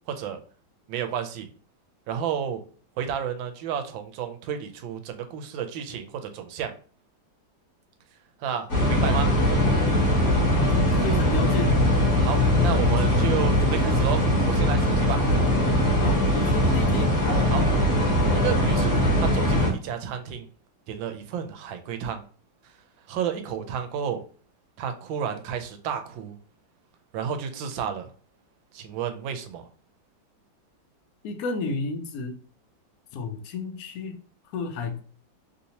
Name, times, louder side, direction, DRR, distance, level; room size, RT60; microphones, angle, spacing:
voice 1, 0.1-0.4 0.9-1.5 2.1-2.6 3.0-6.7 8.4-9.3 12.2-15.2 17.5-17.7 18.3-20.5 20.9-22.2 23.1-24.2 24.8-26.4 27.1-28.1 28.7-29.7, right 8 dB, 85° right, 7 dB, 1.3 m, -31 dB
sound 1, 8.7-19.7, left 1 dB, 45° left, 1.3 m, -21 dB
voice 2, 10.6-11.8 16.0-17.1 31.2-32.4 33.1-34.2 34.5-35.0, left 3 dB, 75° left, 5 dB, 0.9 m, -32 dB
3.3 x 2.7 x 2.8 m, 0.41 s
omnidirectional pair, 2.0 m